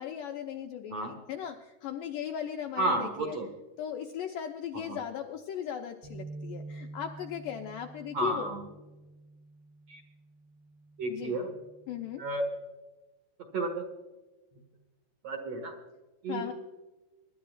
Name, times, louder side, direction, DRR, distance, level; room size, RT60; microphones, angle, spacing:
voice 1, 0.0-3.4 3.8-8.6 11.1-11.4 11.9-12.2 16.3-16.5, left 9 dB, 80° left, 3 dB, 2.0 m, -38 dB
voice 2, 2.8-3.5 4.9-5.0 8.1-8.6 9.9-10.0 11.0-11.5 12.2-12.5 13.5-13.8 15.2-15.7 16.2-16.5, right 2 dB, 55° right, 4 dB, 2.2 m, -31 dB
sound 1, 6.0-12.3, right 2 dB, 80° right, 7.6 m, -48 dB
25.0 x 12.0 x 2.4 m, 1.1 s
omnidirectional pair, 4.6 m